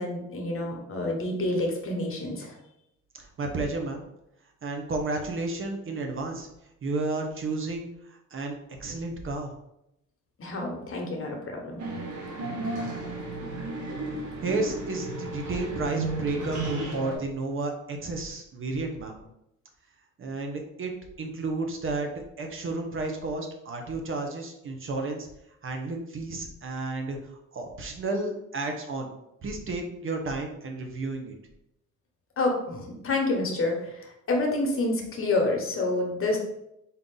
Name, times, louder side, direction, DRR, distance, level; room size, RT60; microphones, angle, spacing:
voice 1, 0.0-2.5 10.4-11.8 32.4-36.4, left 2 dB, 45° left, 1 dB, 1.1 m, -28 dB
voice 2, 3.1-4.0 4.6-6.5 6.8-8.5 8.8-9.5 14.4-19.2 20.2-20.9 21.2-22.1 22.4-25.3 25.6-29.1 29.4-31.3, right 3 dB, 45° right, 3 dB, 0.8 m, -32 dB
sound 1, 11.8-17.1, right 2 dB, 70° right, 1.1 m, -33 dB
3.8 x 2.8 x 3.8 m, 0.83 s
cardioid pair, 90°, 30 cm